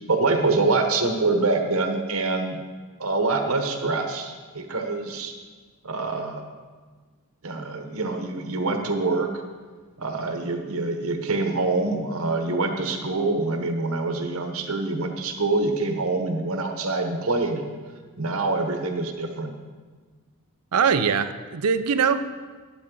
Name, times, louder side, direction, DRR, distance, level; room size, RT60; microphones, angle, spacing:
voice 1, 0.1-2.6 3.0-5.3 5.8-6.4 7.4-9.3 10.0-17.6 18.2-19.5, right 3 dB, 70° right, 5 dB, 1.1 m, -25 dB
voice 2, 20.7-22.2, right 6 dB, 90° right, 11 dB, 0.6 m, -22 dB
12.5 x 8.8 x 3.8 m, 1.4 s
head